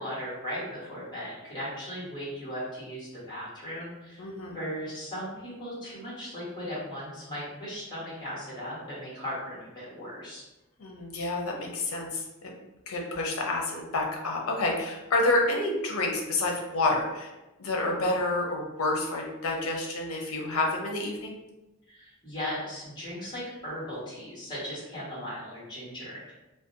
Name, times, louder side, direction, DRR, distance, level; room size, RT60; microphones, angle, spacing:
voice 1, 0.0-10.4 21.9-26.3, equal, 20° left, -9 dB, 1.2 m, -37 dB
voice 2, 4.2-4.6 10.8-12.5 12.9-17.3 17.6-21.4, left 2 dB, 85° left, 0 dB, 0.5 m, -29 dB
2.5 x 2.1 x 2.5 m, 1.0 s
head